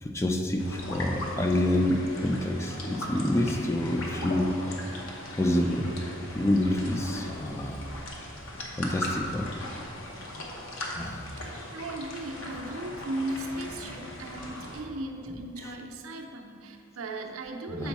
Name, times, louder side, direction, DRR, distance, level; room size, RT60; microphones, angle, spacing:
voice 1, 0.0-4.5 5.4-5.9 6.3-7.8 8.8-9.5 10.9-11.2 14.4-14.5 17.7-17.9, left 1 dB, 15° left, 3 dB, 0.3 m, -27 dB
sound 1, 0.6-14.8, left 1 dB, 75° left, 0.9 m, -39 dB
voice 2, 11.4-17.9, right 1 dB, 85° right, 3 dB, 0.6 m, -37 dB
6.9 x 4.5 x 4.1 m, 2.7 s
head